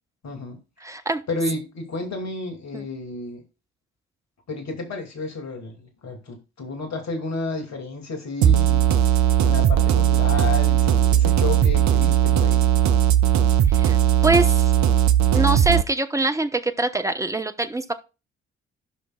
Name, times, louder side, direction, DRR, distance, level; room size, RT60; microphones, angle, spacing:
voice 1, 0.2-0.6 1.3-3.4 4.5-8.9 9.4-12.6, left 3 dB, 50° left, 2.5 m, -31 dB
voice 2, 0.8-1.2 2.7-2.9 13.7-14.0 14.2-14.7 15.3-17.9, right 2 dB, 10° right, 1.0 m, -24 dB
sound 1, 8.4-15.8, right 10 dB, 50° right, 0.7 m, -18 dB
15.5 x 5.7 x 2.4 m
figure-of-eight pair, 45°, 35 cm